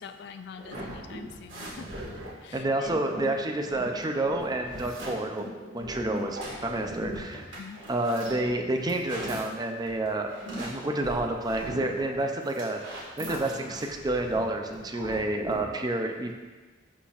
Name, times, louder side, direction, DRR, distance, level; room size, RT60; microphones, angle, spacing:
voice 1, 0.0-1.9 2.4-2.9 7.5-7.8, left 6 dB, 60° left, 8 dB, 0.3 m, -45 dB
sound 1, 0.5-15.7, equal, 80° right, 2.0 m, -39 dB
voice 2, 2.5-5.5 5.7-7.5 7.9-16.3, right 2 dB, 20° right, 3 dB, 0.5 m, -29 dB
11.5 x 4.1 x 2.5 m, 1.3 s
head